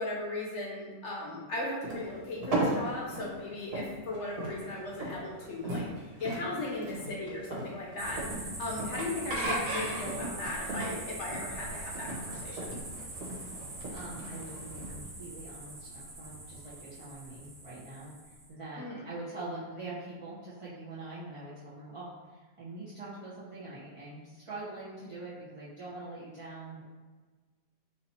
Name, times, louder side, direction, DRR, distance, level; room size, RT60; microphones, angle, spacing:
voice 1, 0.0-12.7 18.8-19.0, left 2 dB, 55° left, -3 dB, 0.9 m, -37 dB
sound 1, 1.8-14.9, right 1 dB, 65° right, 1.5 m, -36 dB
sound 2, 8.0-18.5, right 2 dB, 90° right, 1.5 m, -43 dB
voice 2, 13.9-18.1 18.5-26.8, right 2 dB, 30° right, -12 dB, 0.5 m, -44 dB
3.2 x 2.8 x 4.2 m, 1.3 s
omnidirectional pair, 1.8 m